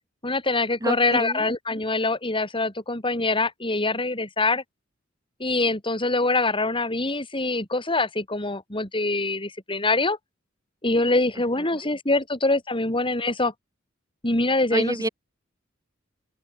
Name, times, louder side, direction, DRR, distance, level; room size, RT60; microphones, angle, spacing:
voice 1, 0.2-4.6 5.4-10.2 10.8-13.5 14.2-15.0, left 2 dB, 25° left, 7.1 m, -24 dB
voice 2, 0.8-1.4 14.7-15.1, right 1 dB, 20° right, 3.4 m, -27 dB
open air
head